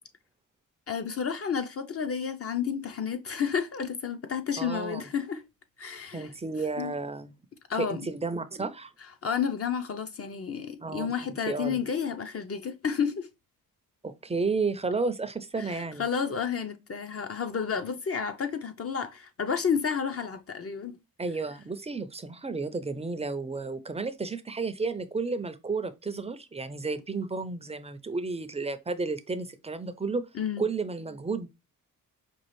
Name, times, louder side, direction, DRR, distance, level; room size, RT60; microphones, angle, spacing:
voice 1, 0.9-5.4 5.8-6.3 6.8-6.9 7.7-8.1 9.2-13.3 15.6-21.0 30.3-30.7, left 7 dB, 40° left, 0.6 m, -31 dB
voice 2, 4.6-5.1 6.1-7.3 7.8-8.9 10.8-11.8 14.0-16.0 21.2-30.2 30.6-31.5, right 4 dB, 20° right, 0.4 m, -32 dB
5.3 x 2.4 x 3.1 m
cardioid pair, 110°, 35 cm